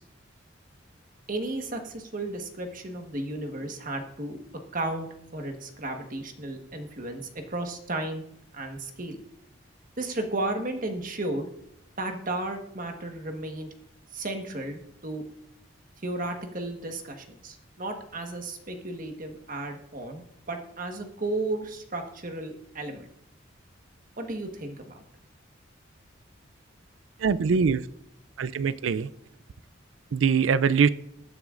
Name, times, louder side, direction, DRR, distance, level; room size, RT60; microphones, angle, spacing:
voice 1, 1.3-4.4 4.7-5.1 5.3-8.2 8.5-9.2 10.0-11.5 12.0-13.7 14.1-15.3 16.0-23.1 24.2-25.0, right 2 dB, 45° right, 4 dB, 1.4 m, -34 dB
voice 2, 27.2-27.8 28.4-29.1 30.1-30.9, right 6 dB, 85° right, 17 dB, 0.4 m, -22 dB
21.5 x 9.3 x 2.5 m, 0.75 s
head